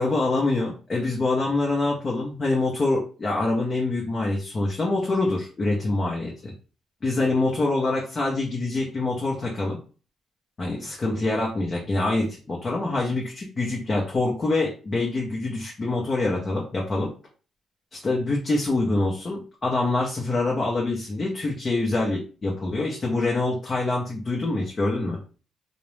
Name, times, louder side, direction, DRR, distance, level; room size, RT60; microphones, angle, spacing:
voice 1, 0.0-6.5 7.0-9.8 10.6-17.1 17.9-25.2, left 2 dB, 35° left, -3 dB, 0.7 m, -25 dB
2.5 x 2.0 x 3.1 m, 0.37 s
cardioid pair, 90°, 0 cm